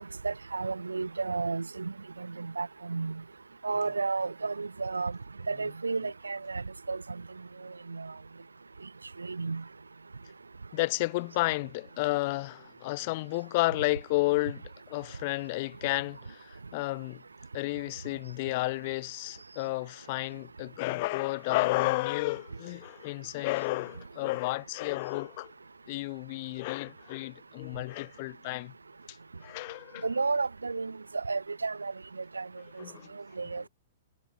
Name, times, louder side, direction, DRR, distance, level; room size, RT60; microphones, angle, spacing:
voice 1, 0.0-3.2 3.6-5.1 5.5-7.0 7.9-8.1 9.2-9.6 30.0-31.9 32.3-32.5 33.4-33.7, right 4 dB, 80° right, 4.4 m, -32 dB
voice 2, 10.7-17.2 17.5-25.5 25.9-28.7 29.1-29.2 29.4-30.1 32.8-33.1, left 22 dB, 45° left, 7.9 m, -32 dB
figure-of-eight pair, 110°, 0 cm